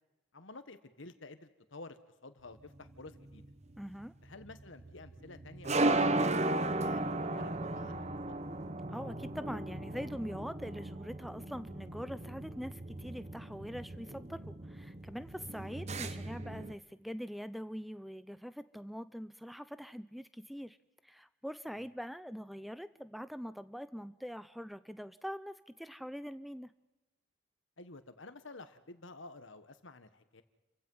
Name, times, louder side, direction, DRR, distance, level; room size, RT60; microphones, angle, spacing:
voice 1, 0.3-3.4 4.2-8.4 15.6-15.7 21.7-21.9 27.8-30.4, left 2 dB, 70° left, 11 dB, 1.5 m, -51 dB
sound 1, 2.7-16.7, right 2 dB, 35° right, 0.9 m, -36 dB
voice 2, 3.8-4.1 8.9-20.8 21.0-26.7, equal, ahead, 14 dB, 0.6 m, -43 dB
29.5 x 16.0 x 5.6 m, 1.1 s
head